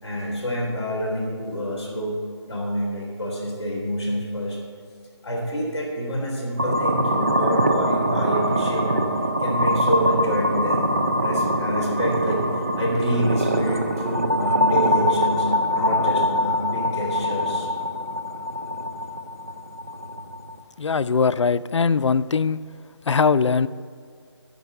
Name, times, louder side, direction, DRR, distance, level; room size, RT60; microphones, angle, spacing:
voice 1, 0.0-2.2 2.5-4.6 5.2-9.1 9.4-10.9 11.2-17.7, equal, 10° left, -13 dB, 2.4 m, -27 dB
sound 1, 6.6-20.6, equal, 30° right, 0.4 m, -23 dB
voice 2, 20.8-22.6 23.1-23.7, left 5 dB, 90° left, 15 dB, 0.4 m, -20 dB
14.5 x 5.4 x 6.6 m, 2.1 s
figure-of-eight pair, 175°, 15 cm